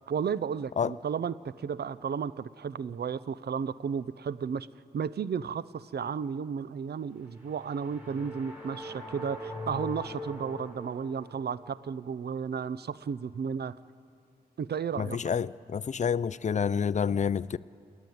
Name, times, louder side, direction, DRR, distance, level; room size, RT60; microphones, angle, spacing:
voice 1, 0.1-4.7 4.9-13.7 14.6-15.2, right 7 dB, 85° right, 0.6 m, -33 dB
sound 1, 7.2-11.5, equal, 15° right, 5.7 m, -41 dB
voice 2, 15.0-17.6, left 7 dB, 45° left, 0.4 m, -28 dB
29.0 x 10.5 x 9.3 m
wide cardioid pair, 135°, 16 cm